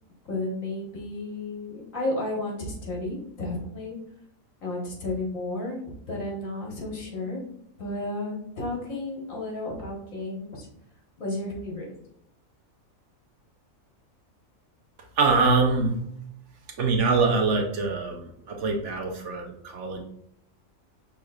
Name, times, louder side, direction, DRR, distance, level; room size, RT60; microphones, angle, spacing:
voice 1, 0.3-4.0 4.6-5.8 6.1-7.4 7.8-10.7 11.2-11.9, left 2 dB, 70° left, -1 dB, 1.7 m, -32 dB
voice 2, 15.2-16.0 16.8-20.0, right 4 dB, 65° right, 2 dB, 1.0 m, -24 dB
6.1 x 3.4 x 2.3 m, 0.71 s
omnidirectional pair, 1.4 m